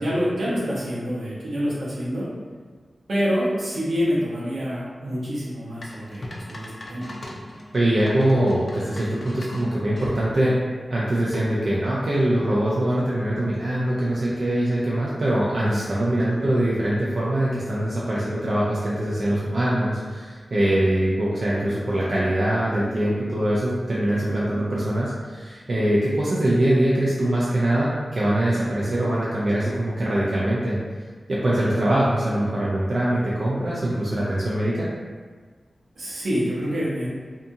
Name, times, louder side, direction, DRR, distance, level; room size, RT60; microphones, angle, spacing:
voice 1, 0.0-2.3 3.1-7.1 35.9-37.1, equal, 90° right, -7 dB, 0.8 m, -26 dB
sound 1, 5.8-10.1 11.3-11.7, left 1 dB, 50° left, 0.4 m, -38 dB
voice 2, 7.7-10.6 10.9-30.8 31.3-34.9, right 1 dB, 60° right, -7 dB, 0.4 m, -23 dB
2.7 x 2.3 x 2.6 m, 1.5 s
wide cardioid pair, 75°, 0 cm